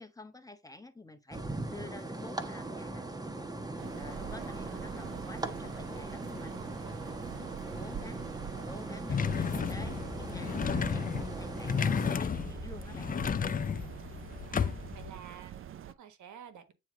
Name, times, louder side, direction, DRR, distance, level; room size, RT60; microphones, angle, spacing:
voice 1, 0.0-1.4 1.7-3.1 3.9-6.6 7.0-8.2 8.6-13.1, left 2 dB, 10° left, 1.2 m, -49 dB
sound 1, 1.3-12.2, right 2 dB, 15° right, 1.2 m, -40 dB
sound 2, 3.8-15.9, right 9 dB, 45° right, 0.5 m, -45 dB
voice 2, 4.0-4.6 7.3-7.6 14.5-16.7, right 8 dB, 75° right, 1.5 m, -51 dB
sound 3, 9.1-15.1, left 7 dB, 30° left, 0.5 m, -33 dB
9.0 x 3.2 x 4.8 m
cardioid pair, 90°, 30 cm